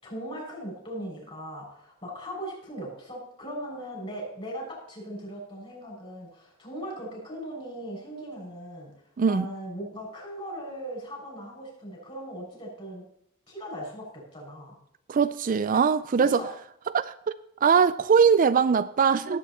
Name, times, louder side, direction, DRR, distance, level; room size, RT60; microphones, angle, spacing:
voice 1, 0.0-8.9 9.3-13.0 13.5-14.8 16.2-16.5, equal, 25° left, 6.8 m, -39 dB
voice 2, 15.1-16.4 16.9-17.1 17.6-19.4, right 6 dB, 40° right, 0.4 m, -21 dB
18.0 x 8.5 x 4.3 m
head